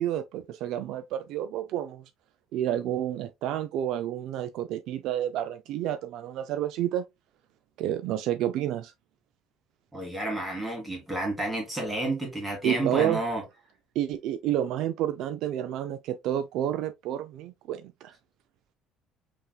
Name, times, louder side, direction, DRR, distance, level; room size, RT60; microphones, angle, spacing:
voice 1, 0.0-2.0 2.5-7.0 7.8-8.9 12.6-13.2 14.0-18.1, right 11 dB, 60° right, 0.4 m, -30 dB
voice 2, 9.9-13.4, right 1 dB, 10° right, 2.1 m, -30 dB
5.6 x 3.5 x 2.2 m
cardioid pair, 170°, 0 cm